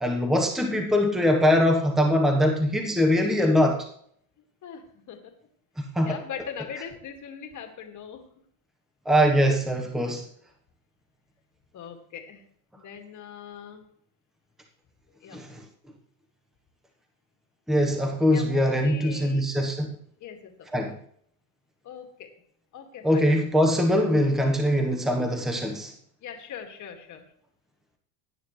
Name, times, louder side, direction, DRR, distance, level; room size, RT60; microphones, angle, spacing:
voice 1, 0.0-3.8 5.8-6.2 9.0-10.2 15.3-15.6 17.7-19.9 20.7-21.0 23.0-25.9, equal, ahead, 3 dB, 1.1 m, -22 dB
voice 2, 4.6-5.3 5.9-8.3 11.7-12.5 12.8-13.8 15.2-15.4 18.3-19.5 20.2-20.9 21.8-22.3 22.7-23.3 26.2-27.3, left 7 dB, 40° left, 4 dB, 2.2 m, -41 dB
16.5 x 9.4 x 3.2 m, 0.63 s
supercardioid pair, 135°, 47 cm